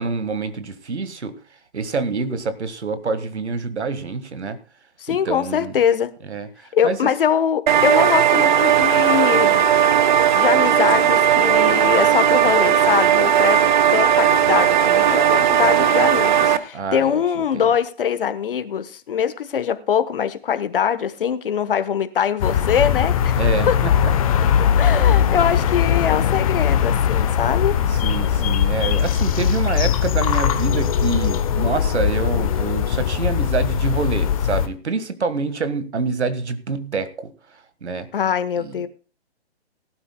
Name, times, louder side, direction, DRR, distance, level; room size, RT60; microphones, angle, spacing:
voice 1, 0.0-1.4 1.7-4.6 5.1-5.7 6.2-6.5 6.8-7.0 16.7-17.2 17.5-17.7 23.4-23.9 27.9-37.3 37.8-38.1 38.6-38.9, right 4 dB, 75° right, 12 dB, 1.7 m, -26 dB
voice 2, 5.0-6.1 6.7-9.6 10.3-23.4 23.7-23.8 24.8-27.8 38.1-38.9, left 8 dB, 55° left, 12 dB, 1.2 m, -22 dB
sound 1, 7.7-16.6, right 9 dB, 45° right, 0.9 m, -16 dB
sound 2, 22.4-34.7, left 8 dB, 30° left, 0.9 m, -20 dB
18.5 x 12.0 x 2.2 m, 0.37 s
hypercardioid pair, 145°, 34 cm